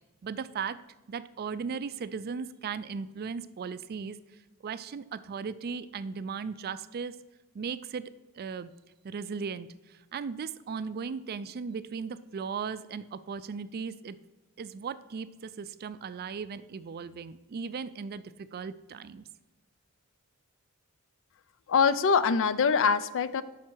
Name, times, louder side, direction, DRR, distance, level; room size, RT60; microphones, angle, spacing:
voice 1, 0.2-0.8 1.1-4.2 4.6-7.2 7.5-8.7 9.0-14.2 14.6-19.3, right 5 dB, 45° right, 14 dB, 0.4 m, -37 dB
voice 2, 21.7-23.4, left 5 dB, 60° left, 15 dB, 0.5 m, -24 dB
12.0 x 5.8 x 4.6 m, 1.1 s
head